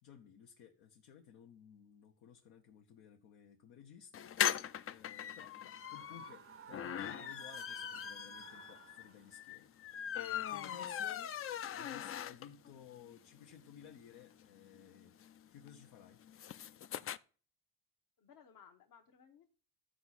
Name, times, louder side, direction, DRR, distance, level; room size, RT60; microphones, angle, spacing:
voice 1, 0.0-9.7 10.1-11.3 11.7-15.2 15.5-16.2, left 8 dB, 75° left, 1.2 m, -57 dB
sound 1, 4.1-12.7 13.1-13.2 13.4-13.5 13.8-17.2, left 10 dB, 35° left, 0.5 m, -40 dB
Screaming, 5.7-9.4, right 8 dB, 35° right, 0.6 m, -55 dB
voice 2, 18.2-19.5, left 7 dB, 55° left, 1.3 m, -61 dB
14.0 x 4.9 x 4.2 m
supercardioid pair, 80°, 39 cm